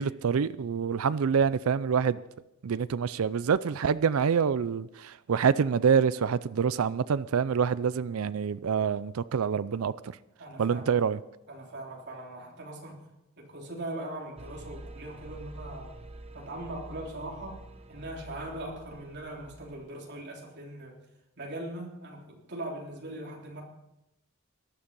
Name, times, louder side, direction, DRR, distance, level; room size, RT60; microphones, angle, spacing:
voice 1, 0.0-2.2 2.6-9.9 10.6-11.2, right 6 dB, 80° right, 0.4 m, -26 dB
voice 2, 10.4-11.0 11.5-13.0 13.4-15.9 16.3-17.6 17.9-20.9 21.4-23.6, right 1 dB, 55° right, 3.6 m, -40 dB
sound 1, 14.4-20.1, right 1 dB, 30° right, 0.9 m, -47 dB
18.5 x 11.5 x 5.4 m
head